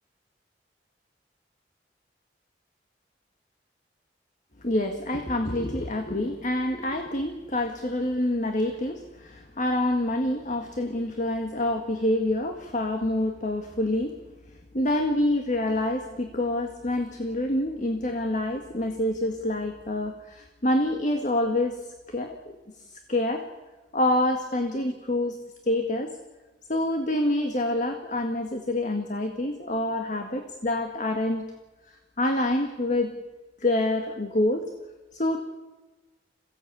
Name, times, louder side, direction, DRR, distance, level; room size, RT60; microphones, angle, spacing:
voice 1, 4.6-14.1 14.7-22.4 22.9-23.5 23.9-25.4 25.6-26.2 26.7-31.5 32.2-33.1 33.6-34.7 35.1-35.4, left 1 dB, 45° left, 5 dB, 1.7 m, -27 dB
27.0 x 16.5 x 8.5 m, 1.2 s
head